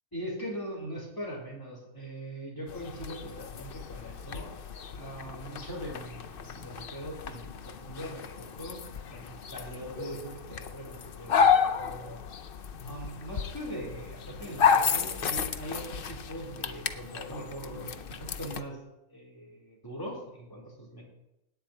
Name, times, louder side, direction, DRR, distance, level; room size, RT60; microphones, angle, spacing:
voice 1, 0.1-4.5 4.9-8.8 9.1-12.2 12.8-18.8 19.1-21.0, right 1 dB, 15° left, -4 dB, 4.1 m, -41 dB
sound 1, 2.7-18.6, left 6 dB, 50° left, 0.7 m, -32 dB
17.5 x 9.5 x 4.5 m, 0.89 s
omnidirectional pair, 1.5 m